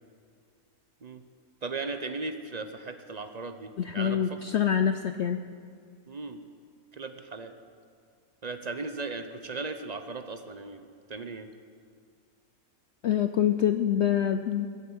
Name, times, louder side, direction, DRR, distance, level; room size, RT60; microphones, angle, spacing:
voice 1, 1.6-4.4 6.1-6.4 6.9-7.5 8.4-11.5, right 3 dB, 40° right, 8 dB, 0.6 m, -37 dB
voice 2, 3.8-5.4 13.0-14.7, left 9 dB, 65° left, 9 dB, 0.7 m, -25 dB
20.0 x 8.0 x 8.8 m, 2.2 s
omnidirectional pair, 1.7 m